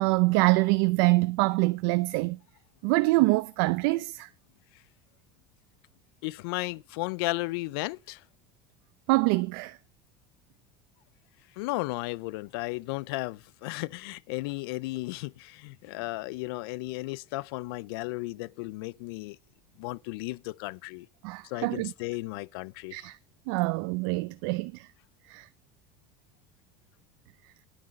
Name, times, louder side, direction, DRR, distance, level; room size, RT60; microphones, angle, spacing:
voice 1, 0.0-2.4 2.8-4.3 9.1-9.8 21.2-21.9 22.9-23.2 23.5-24.9 25.3-25.5, right 23 dB, 75° right, 0.5 m, -25 dB
voice 2, 6.2-8.2 11.6-19.4 19.8-21.1 21.4-23.0, left 21 dB, 80° left, 0.4 m, -34 dB
10.0 x 5.3 x 7.5 m
supercardioid pair, 120°, 12 cm